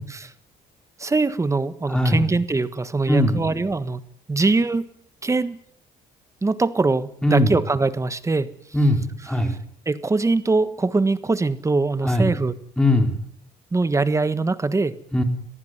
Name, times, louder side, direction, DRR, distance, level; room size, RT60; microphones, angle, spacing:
voice 1, 1.0-4.0 4.3-4.9 5.2-5.6 6.4-8.5 9.8-12.5 13.7-15.0, right 3 dB, 20° right, 13 dB, 1.4 m, -22 dB
voice 2, 1.9-2.2 3.1-3.5 7.2-7.5 8.7-9.5 12.0-12.4 12.8-13.2 15.1-15.2, left 1 dB, 5° left, 5 dB, 4.1 m, -19 dB
21.5 x 15.0 x 9.6 m, 0.64 s
cardioid pair, 110°, 17 cm